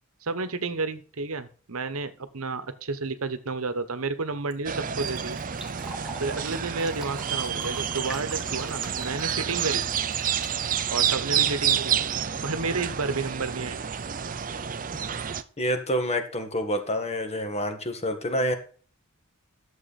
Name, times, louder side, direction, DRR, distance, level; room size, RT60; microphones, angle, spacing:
voice 1, 0.2-5.4 6.2-9.9 10.9-13.8, right 3 dB, 75° right, 11 dB, 1.1 m, -31 dB
Fill (with liquid), 4.2-11.3, right 1 dB, 5° right, 1.7 m, -44 dB
sound 1, 4.7-15.4, right 8 dB, 40° right, 0.6 m, -29 dB
voice 2, 15.6-18.5, equal, 30° left, 6 dB, 1.7 m, -27 dB
11.5 x 7.3 x 4.1 m, 0.40 s
head